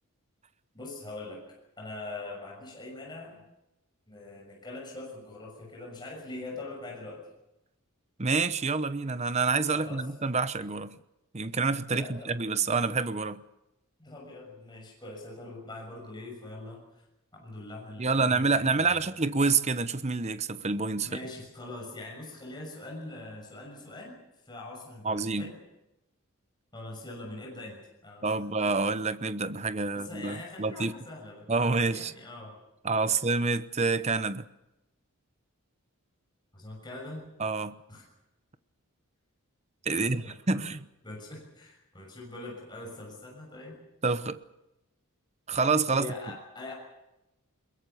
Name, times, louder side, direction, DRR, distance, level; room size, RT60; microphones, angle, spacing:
voice 1, 0.7-1.4 1.8-3.4 4.1-7.2 9.7-10.0 11.9-12.3 14.0-17.0 17.3-19.0 21.0-24.2 24.4-25.6 26.7-28.5 29.9-32.6 33.0-33.2 36.5-37.3 37.9-38.0 39.9-40.6 41.0-43.8 45.9-46.7, left 2 dB, 20° left, -1 dB, 6.5 m, -43 dB
voice 2, 8.2-11.0 11.3-13.4 18.0-21.1 25.0-25.5 28.2-30.9 31.5-32.1 32.8-34.5 37.4-37.8 39.8-40.9 44.0-44.4 45.5-46.1, right 4 dB, 30° right, 13 dB, 0.9 m, -27 dB
22.0 x 22.0 x 7.0 m, 0.91 s
head